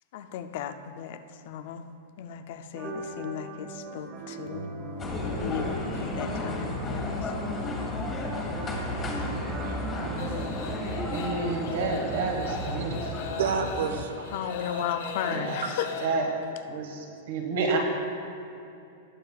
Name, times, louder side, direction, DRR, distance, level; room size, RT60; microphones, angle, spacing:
voice 1, 0.1-1.2 1.5-1.8 2.2-4.7 5.4-7.2 14.3-15.9, left 9 dB, 45° left, 9 dB, 0.4 m, -35 dB
sound 1, 2.7-11.4, right 2 dB, 25° right, 1.2 m, -40 dB
sound 2, 5.0-14.0, left 1 dB, 15° left, 1.2 m, -33 dB
sound 3, 10.2-16.1, left 5 dB, 70° left, 2.0 m, -39 dB
voice 2, 11.1-13.1 15.3-15.6 16.0-16.3 16.7-17.8, right 4 dB, 60° right, 2 dB, 1.6 m, -30 dB
voice 3, 13.3-14.9 15.2-15.7, right 5 dB, 85° right, 6 dB, 1.0 m, -32 dB
19.5 x 7.4 x 2.4 m, 2.7 s
supercardioid pair, 175°, 0 cm